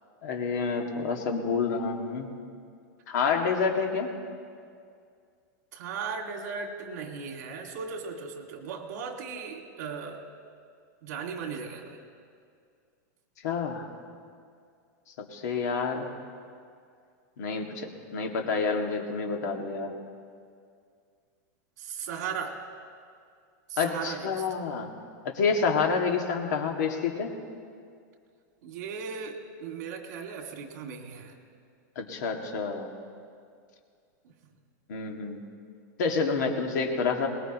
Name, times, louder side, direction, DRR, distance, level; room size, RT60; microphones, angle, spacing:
voice 1, 0.2-2.3 3.1-4.1 13.4-13.9 15.2-16.2 17.4-19.9 23.8-24.9 25.2-27.3 32.0-32.9 34.9-35.4 36.0-37.3, left 5 dB, 70° left, 2 dB, 2.1 m, -28 dB
voice 2, 5.7-10.2 11.0-12.0 21.8-22.6 23.7-24.4 28.6-31.4 34.2-34.3, right 6 dB, 60° right, 3 dB, 2.2 m, -37 dB
23.0 x 20.0 x 3.1 m, 2.3 s
supercardioid pair, 170°, 10 cm